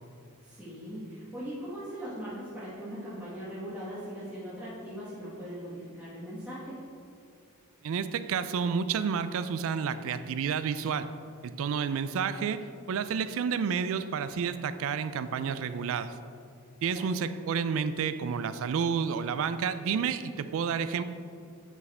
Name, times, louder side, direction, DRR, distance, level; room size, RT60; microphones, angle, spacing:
voice 1, 0.4-6.8 16.9-17.1, equal, 5° right, -11 dB, 1.2 m, -40 dB
voice 2, 7.8-11.1 11.4-16.1 16.8-21.0, right 6 dB, 65° right, 12 dB, 0.3 m, -30 dB
8.2 x 4.7 x 3.4 m, 2.4 s
head